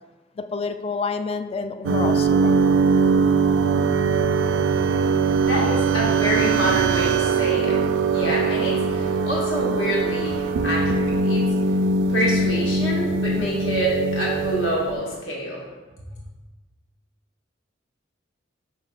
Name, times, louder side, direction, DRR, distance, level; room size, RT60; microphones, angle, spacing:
voice 1, 0.4-2.8, left 4 dB, 30° left, 10 dB, 0.3 m, -29 dB
sound 1, 1.8-15.0, right 4 dB, 70° right, 0.3 m, -21 dB
voice 2, 5.4-7.8 8.1-11.7 12.1-15.6, equal, 70° left, -5 dB, 2.1 m, -27 dB
6.4 x 3.9 x 4.0 m, 1.2 s
head